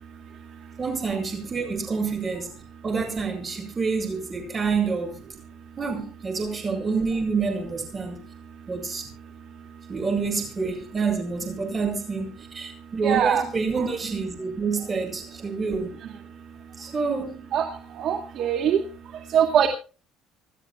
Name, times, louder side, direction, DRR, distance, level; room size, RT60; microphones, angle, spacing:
voice 1, 0.8-2.6 2.8-5.2 5.8-8.2 8.7-9.1 9.9-15.9 16.8-17.4, right 4 dB, 25° right, 8.0 m, -27 dB
voice 2, 13.0-13.4 13.8-13.9 17.5-17.7 18.0-18.8 19.3-19.7, right 9 dB, 55° right, 2.4 m, -22 dB
28.0 x 12.5 x 2.4 m
cardioid pair, 135°, 0 cm